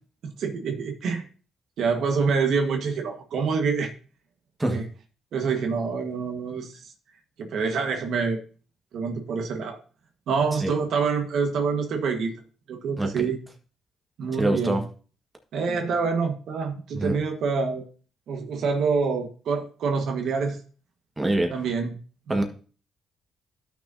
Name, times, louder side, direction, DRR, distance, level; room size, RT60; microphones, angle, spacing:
voice 1, 0.2-1.3 1.8-3.9 4.7-4.8 5.3-6.8 7.4-8.4 8.9-9.8 10.3-12.3 12.7-13.4 14.2-14.8 15.5-17.8 18.3-20.6 21.5-21.9 22.3-22.4, right 5 dB, 70° right, 4 dB, 1.5 m, -26 dB
voice 2, 14.4-14.8 16.9-17.2 21.2-21.5 22.3-22.4, right 1 dB, 15° right, 3 dB, 1.6 m, -24 dB
12.5 x 6.1 x 2.7 m, 0.39 s
cardioid pair, 90°, 0 cm